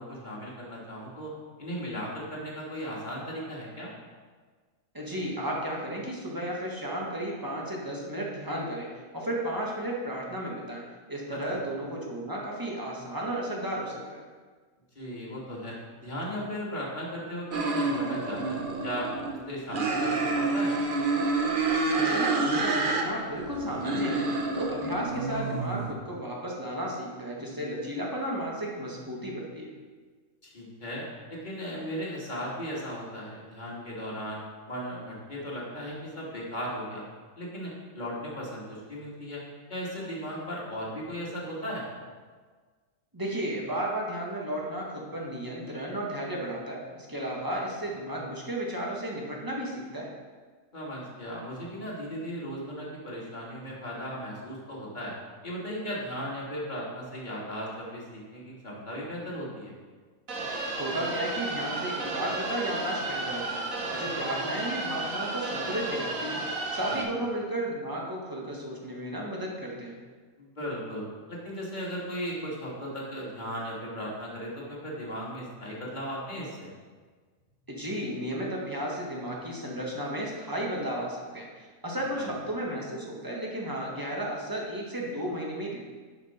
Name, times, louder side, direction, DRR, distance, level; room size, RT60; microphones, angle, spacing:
voice 1, 0.0-1.3 1.6-3.9 14.9-19.1 19.5-20.7 30.4-31.0 31.3-34.4 34.7-37.0 37.4-39.4 39.7-41.9 50.7-55.1 55.4-59.7 66.9-67.0 70.4-76.7, equal, 30° left, -5 dB, 2.4 m, -36 dB
voice 2, 4.9-14.2 21.9-24.3 24.5-29.7 43.1-50.1 60.7-69.9 77.7-85.8, right 1 dB, 15° right, -3 dB, 1.6 m, -33 dB
sound 1, 17.5-19.3 19.7-23.0 23.4-25.9, right 3 dB, 45° right, 0.9 m, -28 dB
sound 2, 60.3-67.0, right 2 dB, 70° right, 1.6 m, -33 dB
10.5 x 6.0 x 4.4 m, 1.5 s
omnidirectional pair, 1.5 m